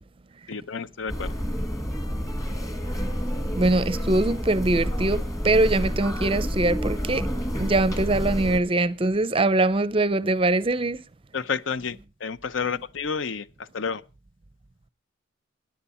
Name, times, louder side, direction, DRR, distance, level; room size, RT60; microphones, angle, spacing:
voice 1, 0.5-1.3 11.3-13.5 13.7-14.0, left 5 dB, 65° left, 0.6 m, -30 dB
sound 1, 1.1-8.6, equal, 15° left, 1.6 m, -29 dB
voice 2, 3.5-7.3 7.6-11.0, right 2 dB, 25° right, 0.5 m, -22 dB
17.0 x 10.5 x 4.2 m
head